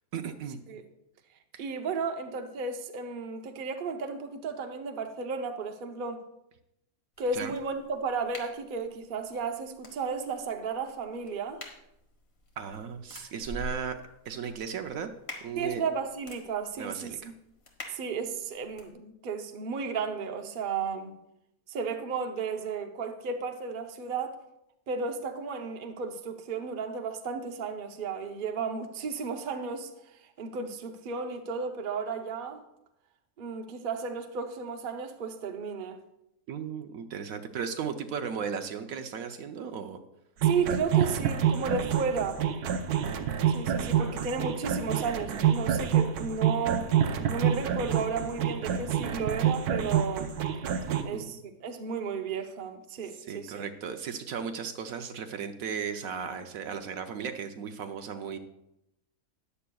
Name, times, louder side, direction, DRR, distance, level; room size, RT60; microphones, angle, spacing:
voice 1, 0.1-0.6 1.5-1.6 7.3-7.5 12.6-14.0 14.3-15.1 15.4-15.8 16.8-17.3 36.5-40.0 44.0-44.2 50.9-51.3 53.1-58.4, right 7 dB, 70° right, 1.1 m, -36 dB
voice 2, 1.6-6.2 7.2-11.6 15.6-17.3 17.9-21.2 21.7-24.4 24.9-29.9 30.4-32.6 33.4-36.0 40.4-42.4 43.5-46.9 47.3-50.4 51.0-53.7, right 5 dB, 45° right, 0.8 m, -33 dB
sound 1, 7.1-18.9, left 1 dB, 45° left, 1.7 m, -48 dB
sound 2, 40.4-51.0, right 9 dB, 90° right, 1.2 m, -27 dB
13.5 x 9.9 x 2.3 m
omnidirectional pair, 1.6 m